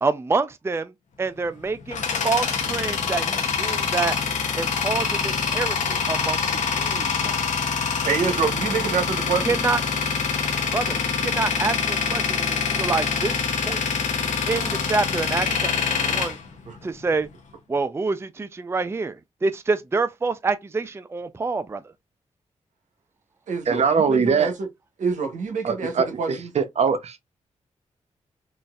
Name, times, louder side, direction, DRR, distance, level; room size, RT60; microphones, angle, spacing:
voice 1, 0.0-0.9 1.2-4.2 4.6-6.4 6.7-7.5 9.4-10.0 10.7-13.8 14.5-16.4 16.8-17.3 17.7-19.2 19.4-21.8, right 4 dB, 20° right, 0.4 m, -27 dB
Tools, 1.4-17.3, left 5 dB, 75° left, 0.9 m, -25 dB
voice 2, 8.0-9.6 16.7-16.8 23.5-24.5 25.0-26.5, right 5 dB, 80° right, 0.9 m, -26 dB
voice 3, 23.7-24.5 25.6-27.3, right 6 dB, 60° right, 0.7 m, -22 dB
3.8 x 2.5 x 2.3 m
cardioid pair, 55°, 13 cm